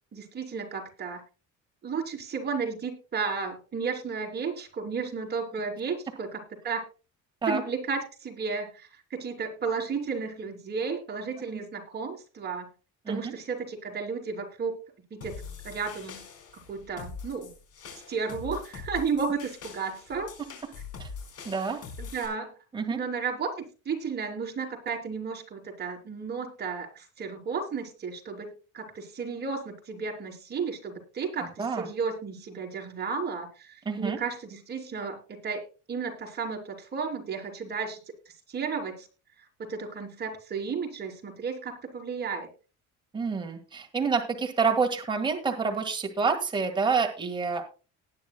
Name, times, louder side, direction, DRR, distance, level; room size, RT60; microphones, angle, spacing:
voice 1, 0.1-1.2 1.8-6.8 7.5-12.7 13.1-14.8 15.1-16.3 16.7-17.5 18.1-20.3 22.0-22.5 22.9-28.5 28.7-38.0 38.3-39.1 39.6-42.5, right 5 dB, 35° right, 2 dB, 3.5 m, -33 dB
sound 1, 15.2-22.3, left 5 dB, 50° left, 4.6 m, -43 dB
voice 2, 21.5-21.8 22.7-23.0 31.4-31.9 33.9-34.2 43.1-47.6, right 5 dB, 15° right, 3 dB, 1.8 m, -28 dB
19.0 x 9.5 x 2.3 m, 0.33 s
cardioid pair, 145°, 31 cm